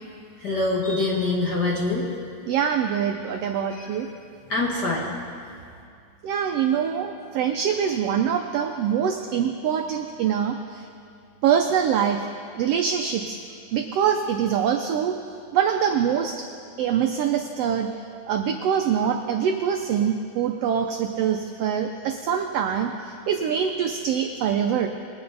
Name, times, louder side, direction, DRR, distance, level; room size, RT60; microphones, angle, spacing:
voice 1, 0.4-2.0 3.7-3.9 4.5-5.2, left 2 dB, 45° left, -4 dB, 1.5 m, -24 dB
voice 2, 2.5-4.1 6.2-10.9 11.4-12.3 12.5-13.4 13.7-15.1 15.5-16.3 16.8-17.9 18.3-24.9, right 8 dB, 80° right, 4 dB, 1.4 m, -24 dB
21.5 x 8.9 x 4.0 m, 2.4 s
omnidirectional pair, 3.4 m